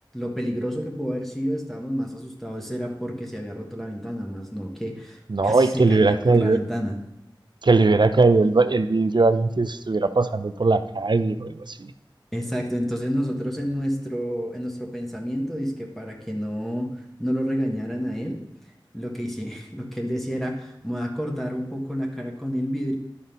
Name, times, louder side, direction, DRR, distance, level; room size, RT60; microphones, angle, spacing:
voice 1, 0.1-7.0 12.3-16.9 17.2-18.4 18.9-23.0, equal, 5° left, -1 dB, 1.4 m, -29 dB
voice 2, 5.3-6.6 7.6-11.9, right 3 dB, 60° right, 10 dB, 0.5 m, -20 dB
11.0 x 4.0 x 5.2 m, 0.85 s
wide cardioid pair, 45°, 9 cm